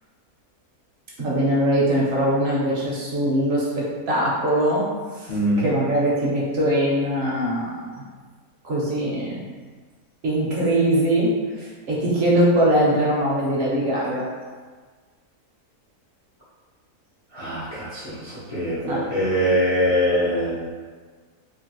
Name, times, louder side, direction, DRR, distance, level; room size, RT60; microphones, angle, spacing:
voice 1, 1.2-4.9 5.2-5.3 5.6-7.9 8.6-9.4 10.2-14.2 18.9-19.0, right 1 dB, 60° right, -5 dB, 0.7 m, -21 dB
voice 2, 5.3-5.7 17.3-20.7, equal, 50° left, -11 dB, 0.4 m, -23 dB
2.9 x 2.4 x 2.8 m, 1.5 s
omnidirectional pair, 1.6 m